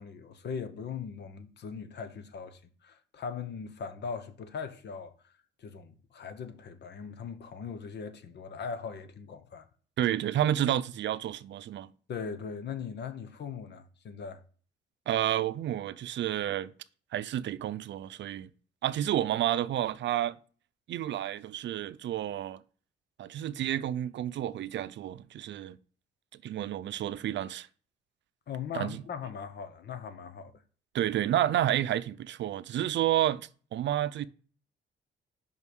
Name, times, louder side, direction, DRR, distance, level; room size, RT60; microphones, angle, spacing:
voice 1, 0.0-5.3 5.6-9.7 12.1-14.4 28.5-30.5, left 6 dB, 60° left, 1.1 m, -40 dB
voice 2, 10.0-11.9 15.1-16.7 17.1-18.5 18.8-20.4 20.9-22.6 23.2-25.8 26.3-27.7 28.7-29.0 30.9-34.3, right 12 dB, 65° right, 0.6 m, -30 dB
5.5 x 5.4 x 6.3 m
cardioid pair, 90°, 20 cm